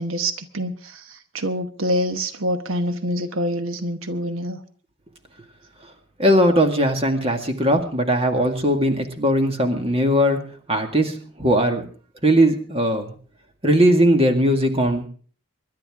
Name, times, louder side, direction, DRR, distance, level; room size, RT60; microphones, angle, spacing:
voice 1, 0.0-4.6, equal, 85° right, 9 dB, 1.1 m, -26 dB
voice 2, 6.2-10.4 10.7-11.9 12.2-13.1 13.6-15.1, equal, 30° right, 5 dB, 1.9 m, -19 dB
25.0 x 11.5 x 3.6 m, 0.43 s
head